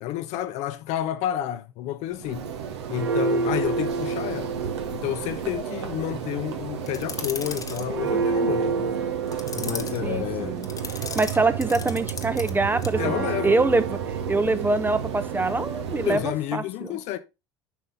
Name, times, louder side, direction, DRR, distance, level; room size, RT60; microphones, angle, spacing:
voice 1, 0.0-2.5 2.9-4.6 4.9-8.9 9.5-10.6 13.0-13.6 16.0-17.2, left 13 dB, 50° left, 0.7 m, -30 dB
Church bell, 2.1-16.4, right 6 dB, 70° right, 1.1 m, -29 dB
sound 1, 6.9-7.9 9.3-10.0 10.6-12.5 12.8-13.0, left 5 dB, 25° left, 1.0 m, -36 dB
voice 2, 10.0-10.7 11.1-17.0, right 3 dB, 15° right, 0.7 m, -25 dB
9.2 x 5.4 x 3.4 m
figure-of-eight pair, 65°, 15 cm